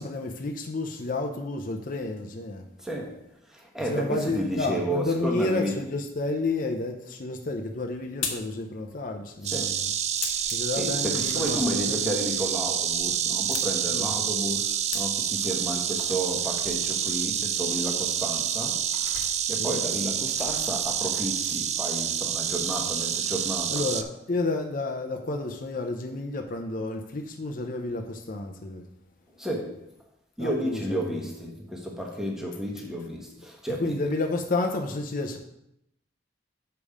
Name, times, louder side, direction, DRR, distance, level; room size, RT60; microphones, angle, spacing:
voice 1, 0.0-2.6 3.9-9.9 10.5-12.2 13.9-14.1 19.6-19.8 23.7-28.8 30.4-31.2 33.8-35.4, left 2 dB, 45° left, 3 dB, 0.6 m, -31 dB
voice 2, 2.8-5.7 9.5-9.9 10.7-23.8 29.4-29.9 30.4-34.1, equal, 5° right, -1 dB, 1.2 m, -32 dB
sound 1, 7.5-15.5, left 7 dB, 90° left, 1.1 m, -41 dB
Insect, 9.4-24.0, right 9 dB, 35° right, 0.4 m, -28 dB
sound 2, 11.1-12.2 12.8-14.0 15.0-15.2 16.2-17.3 18.0-18.1 18.9-19.4 20.3-20.7, left 4 dB, 75° left, 1.1 m, -47 dB
6.8 x 5.2 x 5.0 m, 0.80 s
head